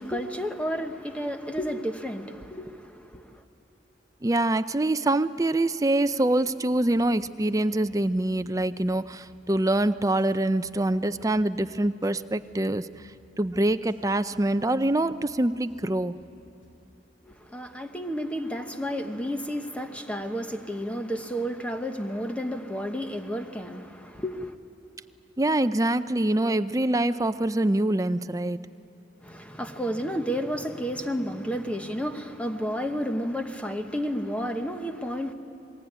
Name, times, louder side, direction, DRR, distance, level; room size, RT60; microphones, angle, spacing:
voice 1, 0.0-3.4 17.3-24.5 29.2-35.3, equal, 5° left, 1.1 m, -31 dB
voice 2, 4.2-12.9 13.4-16.2 25.4-28.6, right 1 dB, 20° right, 0.5 m, -25 dB
sound 1, 6.1-6.2 6.5-7.0 7.4-7.6 7.9-8.4 8.8-9.0 9.2-9.8 10.2-10.3 10.6-11.2 11.5-11.7 12.0-12.6 12.9-13.1 13.4-14.0 14.3-14.5 14.8-15.4 15.7-15.9 16.2-16.7, left 1 dB, 90° left, 6.1 m, -58 dB
27.0 x 20.5 x 9.8 m
head